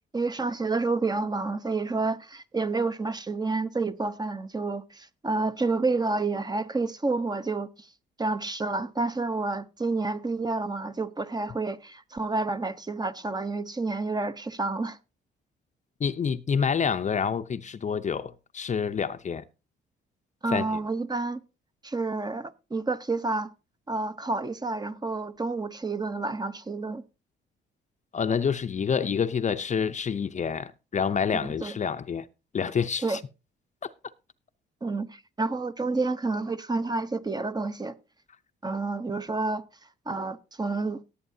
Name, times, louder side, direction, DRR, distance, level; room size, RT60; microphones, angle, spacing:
voice 1, 0.1-7.9 8.2-15.0 20.4-21.4 21.8-23.5 23.9-27.0 31.4-31.8 33.0-33.2 34.8-38.0 38.6-39.6 40.1-41.0, right 3 dB, 20° right, 0.9 m, -29 dB
voice 2, 16.0-19.4 20.5-20.6 28.1-32.3 32.5-33.2, left 6 dB, 35° left, 0.6 m, -27 dB
18.0 x 8.4 x 2.7 m
cardioid pair, 90°, 20 cm